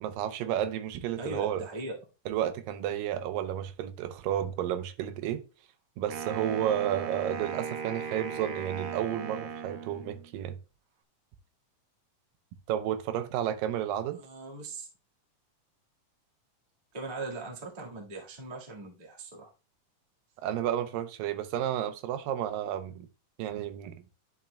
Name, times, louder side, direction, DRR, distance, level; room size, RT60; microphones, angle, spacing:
voice 1, 0.0-1.6 2.3-5.4 6.0-10.6 12.7-14.2 20.4-23.1 23.4-24.0, right 10 dB, 85° right, 2.4 m, -31 dB
voice 2, 1.2-2.0 14.2-14.9 16.9-19.5, right 2 dB, 30° right, 0.7 m, -39 dB
Wind instrument woodwind instrument, 6.1-10.3, right 6 dB, 70° right, 1.9 m, -37 dB
11.0 x 5.9 x 2.2 m
omnidirectional pair, 3.9 m